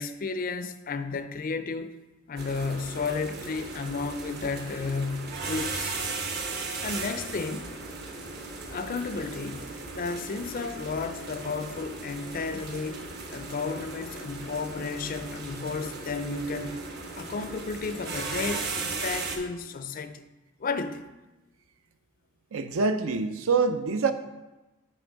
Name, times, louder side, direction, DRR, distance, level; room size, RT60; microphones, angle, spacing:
voice 1, 0.0-1.9 2.3-6.0 6.8-7.7 8.7-16.8 17.1-20.2 20.6-21.0, left 4 dB, 40° left, 0.4 m, -33 dB
sound 1, 2.4-19.4, right 3 dB, 50° right, 1.0 m, -37 dB
voice 2, 22.5-24.1, right 4 dB, 70° right, 0.5 m, -25 dB
8.5 x 3.3 x 6.3 m
head